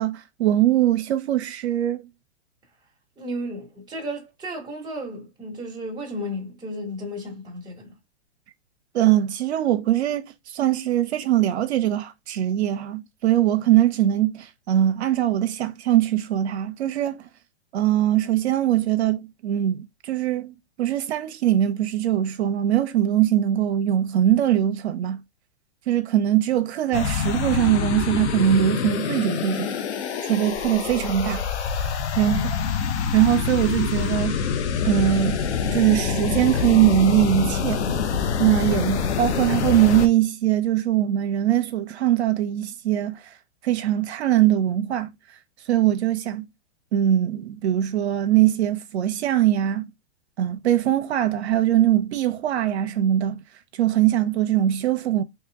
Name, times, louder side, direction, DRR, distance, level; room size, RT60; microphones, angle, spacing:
voice 1, 0.0-2.0 8.9-17.3 17.7-25.2 25.9-29.7 30.2-31.4 32.2-32.4 33.1-34.4 34.8-35.4 35.7-37.8 38.4-43.2 43.6-45.1 45.7-46.4 46.9-49.9 50.4-53.4 53.8-55.2, right 12 dB, 75° right, 0.7 m, -21 dB
voice 2, 3.2-7.9 32.2-32.5, equal, 10° right, 1.2 m, -33 dB
sound 1, 26.9-40.1, left 6 dB, 90° left, 0.7 m, -26 dB
3.1 x 2.8 x 3.5 m
hypercardioid pair, 135°, 33 cm